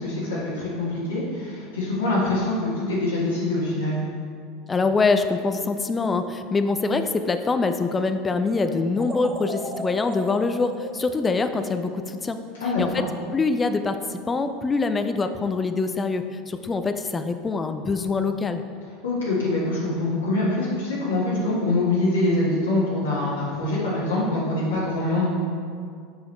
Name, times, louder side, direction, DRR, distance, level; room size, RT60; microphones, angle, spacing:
voice 1, 0.0-4.0 12.6-13.0 19.0-25.3, left 2 dB, 80° left, -9 dB, 1.5 m, -24 dB
voice 2, 4.7-12.4 12.8-13.0 13.3-14.0 14.3-18.6, left 4 dB, 20° left, 8 dB, 0.4 m, -24 dB
sound 1, 8.9-12.1, equal, 15° right, 0.8 m, -36 dB
7.0 x 5.6 x 3.2 m, 2.2 s
hypercardioid pair, 80°, 0 cm